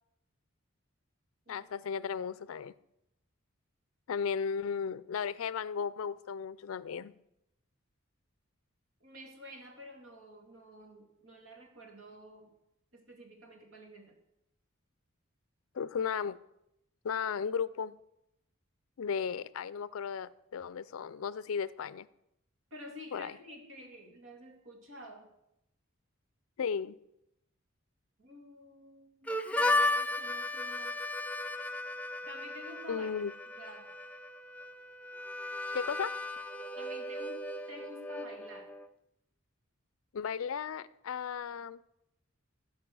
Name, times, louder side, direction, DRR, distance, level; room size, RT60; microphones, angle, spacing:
voice 1, 1.5-2.7 4.1-7.1 15.7-16.4 17.0-18.0 19.0-22.1 23.1-23.3 26.6-27.0 32.9-33.3 35.7-36.1 40.1-41.8, left 6 dB, 80° left, 18 dB, 0.4 m, -35 dB
voice 2, 9.0-12.6 12.9-14.1 22.7-25.3 28.2-31.0 32.3-33.1 33.4-33.9 36.8-38.7, equal, 70° right, 2 dB, 2.4 m, -50 dB
Harmonica, 29.3-38.9, left 2 dB, 5° left, 0.4 m, -35 dB
15.5 x 5.3 x 6.1 m, 0.84 s
head